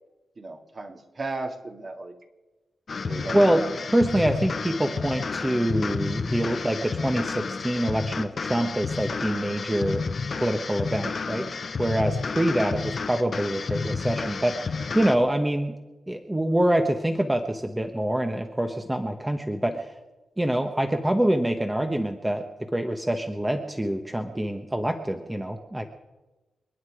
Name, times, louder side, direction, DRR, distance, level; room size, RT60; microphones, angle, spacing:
voice 1, 0.4-2.2 3.0-3.6, right 2 dB, 40° right, 4 dB, 2.1 m, -35 dB
sound 1, 2.9-15.2, left 4 dB, 50° left, 1.0 m, -31 dB
voice 2, 3.9-10.0 10.4-11.5 11.8-15.8 16.1-20.0 20.4-22.4 22.7-25.9, right 1 dB, 10° right, 6 dB, 1.1 m, -25 dB
28.5 x 9.6 x 4.9 m, 1.1 s
wide cardioid pair, 100°, 0 cm